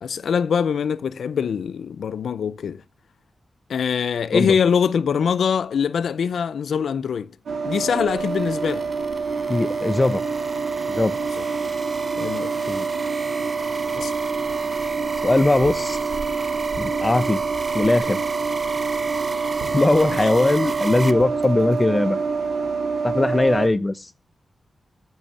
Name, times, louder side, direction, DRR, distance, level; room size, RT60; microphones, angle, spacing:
voice 1, 0.0-2.8 3.7-7.3 7.6-8.9 11.4-11.5 12.2-12.5 14.0-14.1 20.1-20.2, left 7 dB, 80° left, 0.6 m, -23 dB
sound 1, 7.5-23.7, right 5 dB, 70° right, 3.7 m, -26 dB
sound 2, 7.7-21.1, right 3 dB, 35° right, 0.8 m, -34 dB
voice 2, 9.5-10.3 10.9-11.2 12.7-12.9 15.2-16.0 16.8-17.4 17.7-18.2 19.7-22.2 23.0-24.1, left 2 dB, 20° left, 0.8 m, -20 dB
14.0 x 6.4 x 7.0 m
wide cardioid pair, 150°, 0 cm